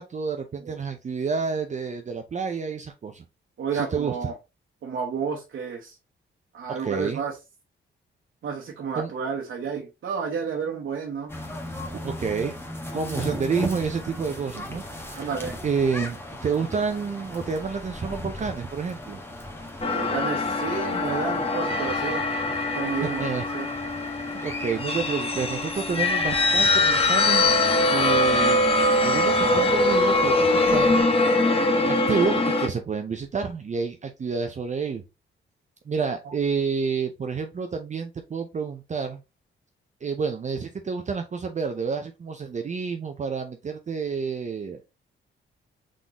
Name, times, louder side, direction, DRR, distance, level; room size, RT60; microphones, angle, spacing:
voice 1, 0.0-3.2 3.7-4.1 6.7-7.2 9.0-9.1 11.9-12.6 12.9-15.3 15.6-19.2 23.0-23.4 24.4-27.4 27.9-28.6 29.0-31.1 31.9-35.0 35.9-39.2 40.0-44.8, right 5 dB, 35° right, 6 dB, 0.5 m, -29 dB
voice 2, 3.6-4.4 4.8-6.0 6.5-7.4 8.4-11.3 15.1-15.6 19.9-22.2 22.7-23.7 36.2-36.3, right 6 dB, 70° right, -1 dB, 1.0 m, -31 dB
sound 1, 11.3-31.0, left 1 dB, 10° left, 1.2 m, -37 dB
sound 2, 19.8-32.7, left 2 dB, 30° left, 0.8 m, -22 dB
3.9 x 3.7 x 2.9 m, 0.26 s
cardioid pair, 95°, 21 cm